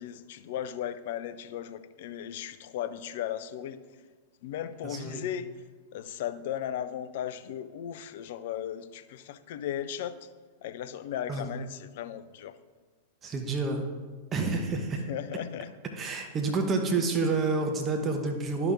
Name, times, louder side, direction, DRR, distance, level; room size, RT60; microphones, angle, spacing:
voice 1, 0.0-3.8 4.4-5.5 5.9-10.3 10.6-12.6 14.9-15.7, left 10 dB, 55° left, 12 dB, 0.4 m, -36 dB
voice 2, 4.8-5.2 11.3-11.5 13.2-13.9 14.3-15.0 16.0-18.7, right 3 dB, 25° right, 4 dB, 0.9 m, -29 dB
11.5 x 5.9 x 2.6 m, 1.4 s
figure-of-eight pair, 95°, 0 cm